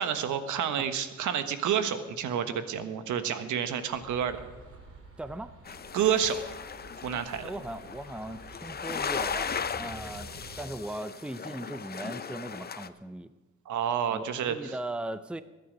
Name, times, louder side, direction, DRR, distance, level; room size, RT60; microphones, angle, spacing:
voice 1, 0.0-4.4 5.9-6.4 7.0-7.5 13.6-14.8, right 8 dB, 75° right, 10 dB, 1.4 m, -29 dB
sound 1, 3.9-10.6, right 2 dB, 45° right, 3.9 m, -49 dB
voice 2, 5.2-5.5 7.4-10.3 10.6-13.3 14.1-15.4, right 1 dB, 5° right, 12 dB, 0.7 m, -38 dB
sound 2, 5.7-12.9, left 6 dB, 30° left, 0.8 m, -37 dB
21.5 x 9.7 x 5.2 m, 1.2 s
cardioid pair, 90°, 30 cm